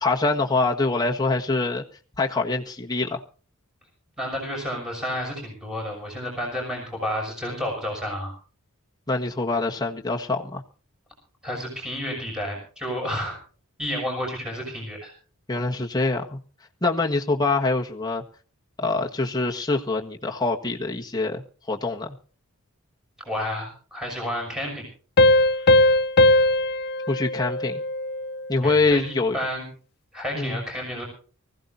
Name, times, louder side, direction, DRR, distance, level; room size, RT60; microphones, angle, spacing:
voice 1, 0.0-1.8 2.2-3.2 9.1-10.6 15.5-16.4 16.8-18.2 18.8-22.1 27.1-27.8 28.5-29.4 30.3-30.6, left 3 dB, 20° left, 0 dB, 1.5 m, -24 dB
voice 2, 4.2-8.4 11.4-13.4 13.8-15.1 23.2-24.8 25.5-25.7 28.6-29.7 30.1-31.0, equal, 5° right, 0 dB, 6.6 m, -31 dB
Piano, 25.2-28.5, left 1 dB, 50° left, 0.6 m, -19 dB
24.5 x 15.5 x 2.6 m, 0.39 s
head